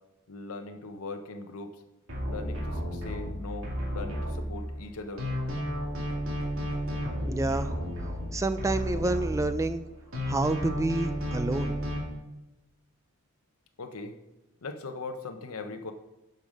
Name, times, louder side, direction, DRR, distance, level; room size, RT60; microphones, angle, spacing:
voice 1, 0.3-1.8 2.2-5.3 13.8-14.1 14.6-15.9, left 3 dB, 75° left, 6 dB, 0.8 m, -40 dB
sound 1, 2.1-4.9 5.2-9.8 10.1-12.0, equal, 60° right, 2.5 m, -32 dB
voice 2, 7.3-7.7 8.3-9.8 10.3-11.8, right 2 dB, 15° right, 11 dB, 0.3 m, -28 dB
11.0 x 5.4 x 5.2 m, 1.0 s
head